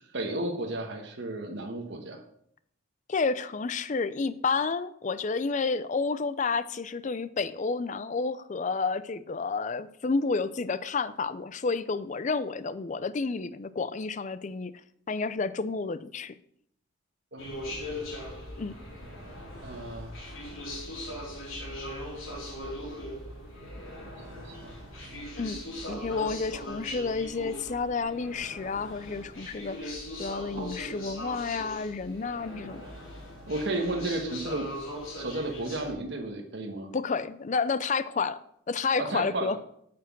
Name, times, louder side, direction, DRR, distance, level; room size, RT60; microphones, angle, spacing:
voice 1, 0.0-2.2 17.3-17.9 19.6-20.1 24.3-25.4 33.5-34.7 35.2-36.9 39.0-39.5, right 2 dB, 60° right, 2 dB, 1.2 m, -34 dB
voice 2, 3.1-14.7 15.1-16.3 18.6-18.8 25.4-25.6 25.9-32.8 36.9-38.4 38.7-39.6, left 4 dB, 35° left, 15 dB, 0.4 m, -30 dB
sound 1, 17.4-35.9, left 1 dB, 90° left, 3.6 m, -40 dB
9.0 x 6.1 x 5.9 m, 0.71 s
head